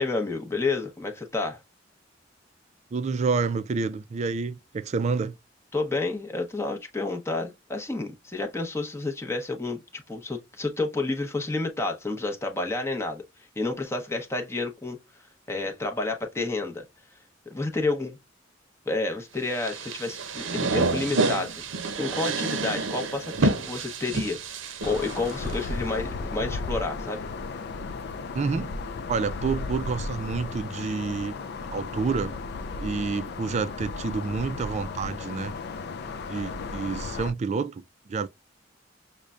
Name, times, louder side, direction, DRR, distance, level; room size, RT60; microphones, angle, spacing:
voice 1, 0.0-1.6 5.7-13.2 13.6-15.0 15.5-16.8 17.5-18.2 18.9-21.5 22.0-24.4 24.8-27.3, left 3 dB, 15° left, 0.8 m, -30 dB
voice 2, 2.9-5.4 28.3-28.7 29.1-31.3 31.7-32.3 32.8-35.5 36.3-37.8 38.1-38.3, right 4 dB, 35° right, 0.3 m, -28 dB
sound 1, 19.5-25.7, right 3 dB, 80° right, 0.6 m, -28 dB
sound 2, 24.8-37.3, left 3 dB, 60° left, 0.4 m, -35 dB
6.4 x 2.2 x 2.3 m
head